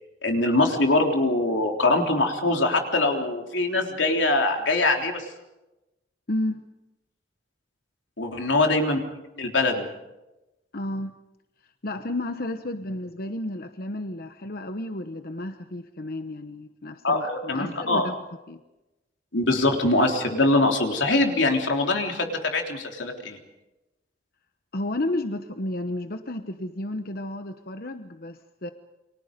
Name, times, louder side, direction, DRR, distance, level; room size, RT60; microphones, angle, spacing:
voice 1, 0.2-5.3 8.2-9.0 9.4-9.9 17.0-18.1 19.3-23.4, left 2 dB, 90° left, 3 dB, 3.5 m, -23 dB
voice 2, 6.3-6.7 10.7-11.1 11.8-18.6 24.7-28.7, left 1 dB, 55° left, 8 dB, 1.1 m, -32 dB
29.5 x 24.0 x 5.3 m, 1.0 s
head